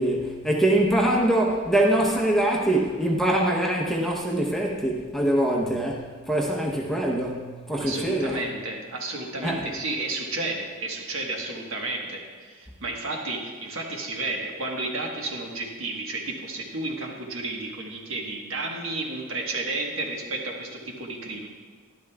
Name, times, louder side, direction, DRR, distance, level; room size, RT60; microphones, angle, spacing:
voice 1, 0.0-8.4 9.4-9.7, right 1 dB, ahead, -1 dB, 0.8 m, -23 dB
voice 2, 7.8-21.5, right 2 dB, 60° right, 0 dB, 1.3 m, -32 dB
11.5 x 11.5 x 2.3 m, 1.5 s
head